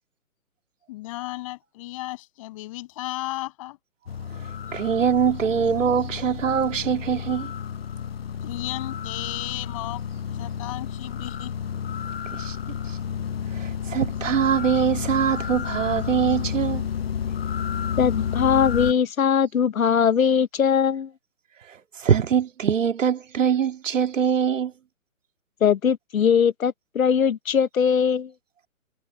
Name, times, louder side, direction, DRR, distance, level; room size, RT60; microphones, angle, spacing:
voice 1, 0.9-3.8 8.4-10.0 10.3-11.5, left 19 dB, 25° left, 7.5 m, -34 dB
sound 1, 4.1-18.9, left 8 dB, 45° left, 1.0 m, -31 dB
voice 2, 4.4-7.5 12.3-12.6 12.9-13.0 13.5-16.9 21.7-24.7, right 7 dB, 60° right, 2.1 m, -23 dB
voice 3, 18.0-21.1 25.6-28.3, left 7 dB, 75° left, 1.2 m, -21 dB
hypercardioid pair, 170°, 42 cm